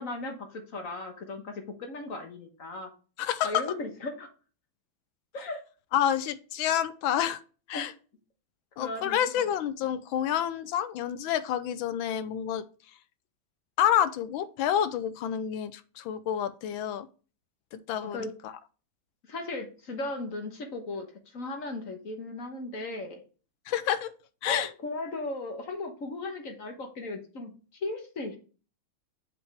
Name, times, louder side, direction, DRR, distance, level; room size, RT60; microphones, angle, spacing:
voice 1, 0.0-2.9 3.4-4.3 5.3-5.6 7.7-7.9 8.8-9.2 18.0-18.3 19.3-21.1 21.3-23.2 24.5-28.4, left 2 dB, 45° left, 4 dB, 1.4 m, -36 dB
voice 2, 3.2-3.6 5.9-7.4 7.7-7.9 8.8-12.6 13.8-17.1 17.7-18.5 23.7-24.1 24.4-24.7, left 10 dB, 80° left, 13 dB, 1.4 m, -28 dB
7.1 x 5.2 x 3.4 m, 0.36 s
omnidirectional pair, 2.2 m